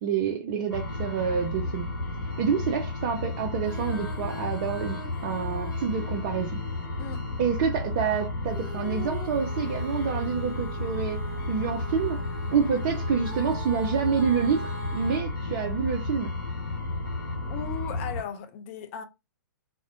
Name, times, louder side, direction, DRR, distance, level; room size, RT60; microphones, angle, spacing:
voice 1, 0.0-1.9 2.4-6.6 7.4-12.2 12.5-16.3, right 6 dB, 35° right, 0.4 m, -28 dB
sound 1, 0.7-18.2, left 2 dB, 75° left, 0.9 m, -32 dB
Female singing, 3.5-7.3 8.5-15.2, right 1 dB, 5° right, 1.3 m, -42 dB
voice 2, 17.5-19.1, left 8 dB, 35° left, 0.4 m, -37 dB
2.4 x 2.0 x 2.7 m
figure-of-eight pair, 115°, 11 cm